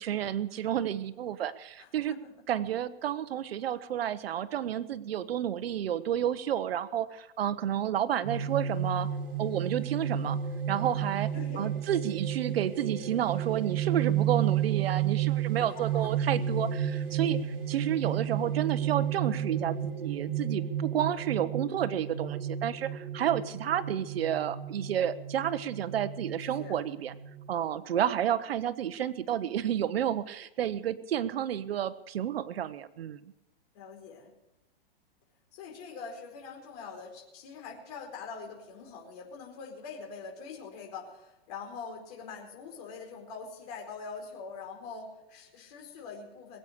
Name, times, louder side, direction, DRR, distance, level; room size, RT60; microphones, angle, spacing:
voice 1, 0.0-2.1 2.5-9.1 9.4-10.4 10.7-11.3 11.6-27.1 27.5-33.2, right 10 dB, 75° right, 15 dB, 0.8 m, -31 dB
voice 2, 1.8-2.3 11.3-11.7 15.6-16.1 26.5-26.8 33.7-34.3 35.5-46.6, left 5 dB, 40° left, 1 dB, 4.5 m, -44 dB
sound 1, 8.2-27.4, right 9 dB, 60° right, 3.3 m, -32 dB
22.0 x 8.5 x 6.7 m, 0.98 s
hypercardioid pair, 165°, 30 cm